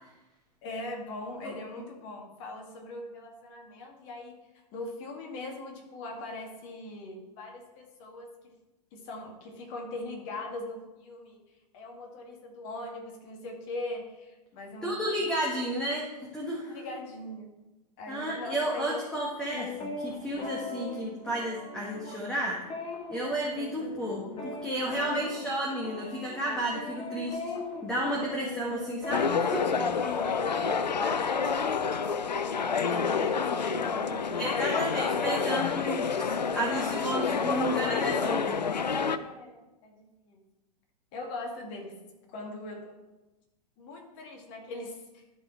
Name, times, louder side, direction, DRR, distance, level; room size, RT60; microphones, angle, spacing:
voice 1, 0.6-4.4 4.7-8.3 8.9-11.4 11.7-15.2 16.7-17.5 18.0-19.0 24.9-25.2 26.5-26.6 29.9-34.8 39.1-40.4 41.1-43.0 43.8-45.2, left 2 dB, 45° left, 2 dB, 2.1 m, -40 dB
voice 2, 14.8-16.1 16.3-16.8 18.1-22.6 23.1-27.4 27.8-29.7 34.4-38.6, right 1 dB, 5° left, -4 dB, 1.6 m, -32 dB
sound 1, 19.4-31.6, left 3 dB, 25° left, 1.7 m, -40 dB
sound 2, 29.1-39.2, left 5 dB, 90° left, 0.5 m, -28 dB
12.0 x 4.5 x 4.5 m, 1.1 s
figure-of-eight pair, 105°, 21 cm